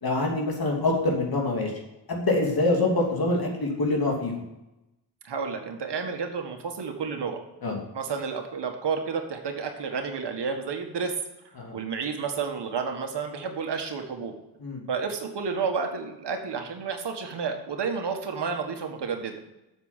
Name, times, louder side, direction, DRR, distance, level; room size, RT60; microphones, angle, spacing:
voice 1, 0.0-1.7 2.1-4.4 7.6-7.8 11.6-11.7 14.6-14.8, left 2 dB, 55° left, 0 dB, 3.0 m, -25 dB
voice 2, 5.2-7.4 7.9-11.1 11.7-14.3 14.9-19.4, right 5 dB, 65° right, 4 dB, 1.7 m, -31 dB
8.5 x 7.3 x 7.4 m, 0.94 s
wide cardioid pair, 100°, 44 cm